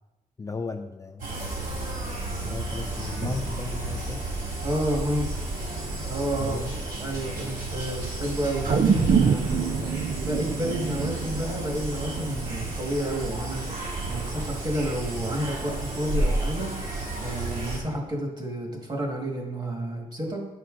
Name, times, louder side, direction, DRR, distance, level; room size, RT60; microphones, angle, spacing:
voice 1, 0.4-1.3 2.4-4.2 6.4-6.7 9.5-10.0, left 4 dB, 20° left, 5 dB, 0.4 m, -35 dB
sound 1, 1.2-17.8, right 2 dB, 65° right, 2.3 m, -32 dB
voice 2, 4.6-5.3 6.1-6.6 7.0-9.6 10.2-13.6 14.1-16.7 17.2-20.5, right 1 dB, 30° right, 0 dB, 1.7 m, -30 dB
sound 2, 8.6-13.1 13.6-13.7, right 6 dB, 45° right, 0.4 m, -25 dB
9.1 x 5.6 x 3.8 m, 1.0 s
cardioid pair, 110°, 15 cm